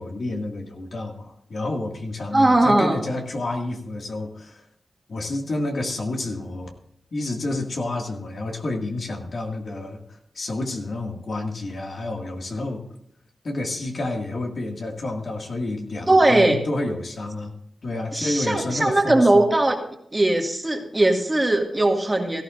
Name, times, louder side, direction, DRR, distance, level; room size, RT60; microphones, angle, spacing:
voice 1, 0.0-4.7 5.1-6.7 7.1-12.8 13.4-17.5 17.8-19.5, left 2 dB, 55° left, 2 dB, 2.1 m, -29 dB
voice 2, 2.3-3.0 16.1-16.6 18.1-19.8 20.1-22.4, right 2 dB, 20° right, 2 dB, 2.0 m, -19 dB
17.5 x 14.5 x 2.6 m, 0.71 s
wide cardioid pair, 95°, 0 cm